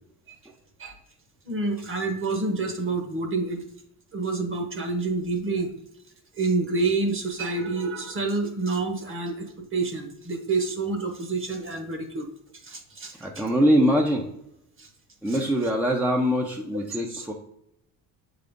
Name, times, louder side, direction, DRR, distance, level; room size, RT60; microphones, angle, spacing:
voice 1, 1.5-3.6 4.1-5.7 6.4-12.3 12.6-13.4 14.8-14.9 15.3-15.4 17.1-17.3, right 3 dB, 30° right, 5 dB, 1.1 m, -28 dB
voice 2, 13.2-14.3 15.2-17.3, equal, 5° right, 1 dB, 0.6 m, -23 dB
7.4 x 3.9 x 3.6 m, 0.79 s
cardioid pair, 110°, 39 cm